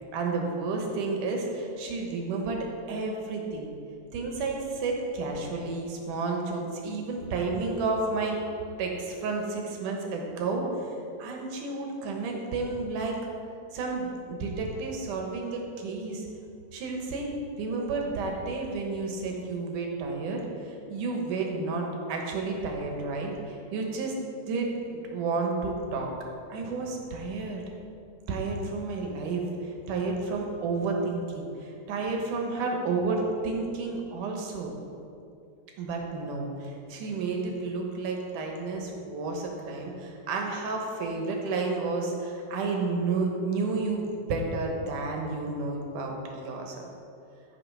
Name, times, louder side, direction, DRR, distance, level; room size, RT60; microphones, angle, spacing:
voice 1, 0.1-2.6 2.9-3.7 4.1-8.4 8.8-10.7 11.2-13.2 13.7-16.3 16.7-24.1 24.5-26.1 26.5-27.6 28.3-34.7 35.8-46.9, right 3 dB, 70° right, 1 dB, 2.7 m, -31 dB
13.5 x 4.9 x 6.2 m, 2.6 s
omnidirectional pair, 3.9 m